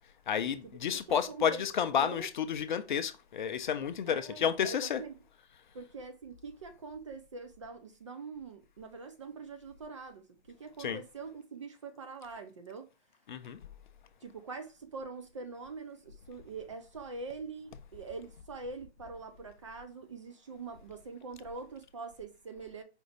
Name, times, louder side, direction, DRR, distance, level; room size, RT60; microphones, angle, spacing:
voice 1, 0.3-5.0 10.8-11.0 13.3-13.6, left 8 dB, 45° left, 0.4 m, -31 dB
voice 2, 1.1-1.6 2.0-2.3 4.1-5.1 5.7-12.9 14.2-22.8, right 4 dB, 30° right, 0.4 m, -44 dB
5.1 x 2.5 x 3.3 m
hypercardioid pair, 135°, 34 cm